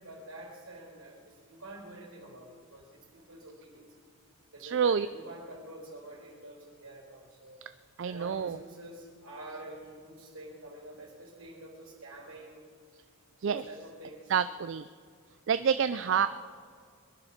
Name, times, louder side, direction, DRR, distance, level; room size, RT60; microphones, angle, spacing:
voice 1, 0.0-3.9 4.5-7.6 8.0-12.6 13.4-14.3 16.0-16.3, right 1 dB, 75° right, 0 dB, 4.3 m, -47 dB
voice 2, 4.6-5.1 8.0-8.6 13.4-13.6 14.3-14.9 15.5-16.3, right 7 dB, 55° right, 13 dB, 0.3 m, -27 dB
22.5 x 11.0 x 5.8 m, 2.1 s
head